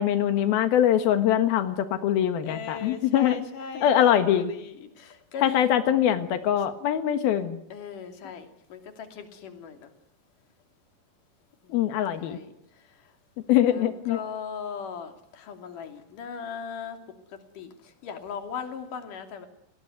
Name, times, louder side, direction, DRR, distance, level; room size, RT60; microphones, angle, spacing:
voice 1, 0.0-3.5 3.8-4.5 5.4-7.6 11.7-12.4 13.5-14.2, left 10 dB, 90° left, 9 dB, 3.4 m, -23 dB
voice 2, 2.4-5.7 7.7-9.9 11.7-11.9 12.2-12.5 13.7-17.0 17.6-17.7 18.0-19.5, left 6 dB, 65° left, 7 dB, 4.2 m, -38 dB
29.5 x 19.5 x 9.5 m, 0.79 s
omnidirectional pair, 4.2 m